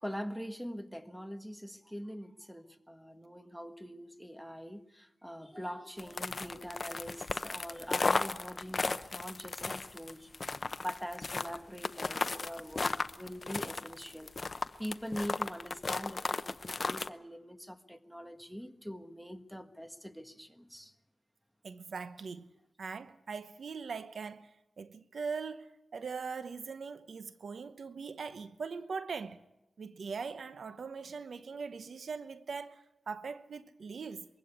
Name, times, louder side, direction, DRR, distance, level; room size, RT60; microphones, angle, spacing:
voice 1, 0.0-10.3 10.8-20.9, equal, ahead, 1.5 m, -43 dB
sound 1, 6.0-17.1, left 3 dB, 45° left, 0.7 m, -35 dB
voice 2, 21.6-22.5 22.8-24.5 24.8-29.4 29.8-34.2, right 5 dB, 75° right, 0.8 m, -41 dB
23.0 x 16.0 x 8.6 m
cardioid pair, 55°, 0 cm